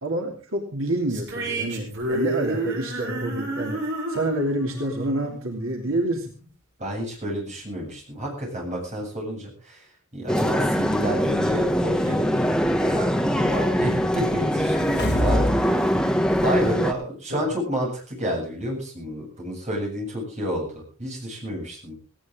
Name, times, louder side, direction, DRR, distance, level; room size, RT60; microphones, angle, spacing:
voice 1, 0.0-3.8 4.1-6.3 15.2-15.5 17.3-17.4, right 1 dB, 75° right, 1 dB, 3.0 m, -28 dB
sound 1, 1.1-6.5, right 1 dB, 60° right, 7.4 m, -31 dB
voice 2, 6.8-12.5 12.8-16.1 16.4-21.9, equal, 35° right, 0 dB, 7.9 m, -30 dB
sound 2, 10.3-16.9, equal, 5° left, 1.2 m, -23 dB
sound 3, 14.7-15.6 16.0-16.1, left 1 dB, 55° left, 3.5 m, -24 dB
18.5 x 17.5 x 3.8 m, 0.38 s
head